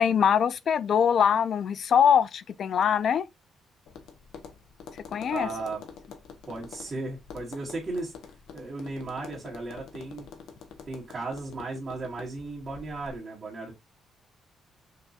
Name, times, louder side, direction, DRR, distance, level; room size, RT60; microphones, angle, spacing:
voice 1, 0.0-3.3 5.1-5.5, left 8 dB, 60° left, 0.3 m, -23 dB
Tap, 3.9-13.2, left 6 dB, 80° left, 0.7 m, -47 dB
voice 2, 5.2-5.8 6.5-8.1 8.5-10.3 10.9-13.7, right 3 dB, 35° right, 1.7 m, -35 dB
5.7 x 2.3 x 2.7 m
cardioid pair, 90°, 0 cm